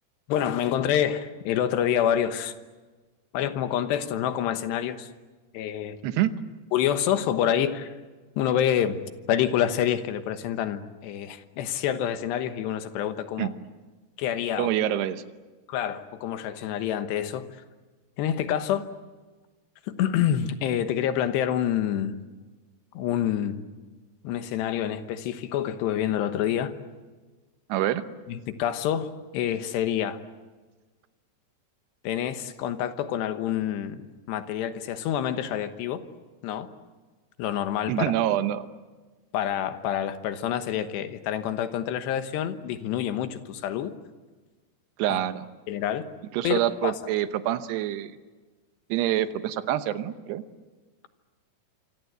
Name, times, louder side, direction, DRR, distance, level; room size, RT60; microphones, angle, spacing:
voice 1, 0.3-2.5 3.3-5.1 5.5-6.0 6.7-7.9 8.4-9.0 9.3-13.5 14.2-14.7 15.7-17.5 18.2-18.9 19.9-22.2 22.9-23.6 24.2-26.7 28.3-30.2 32.0-34.0 34.3-36.0 36.4-36.7 37.4-38.1 39.3-43.9 45.1-45.2 45.7-46.1 46.4-46.9, left 10 dB, 75° left, 9 dB, 3.3 m, -27 dB
voice 2, 14.6-15.2 27.7-28.0 37.9-38.7 45.0-45.5 46.3-48.1 48.9-50.4, right 12 dB, 75° right, 11 dB, 3.0 m, -26 dB
26.5 x 25.5 x 8.1 m, 1.3 s
omnidirectional pair, 5.0 m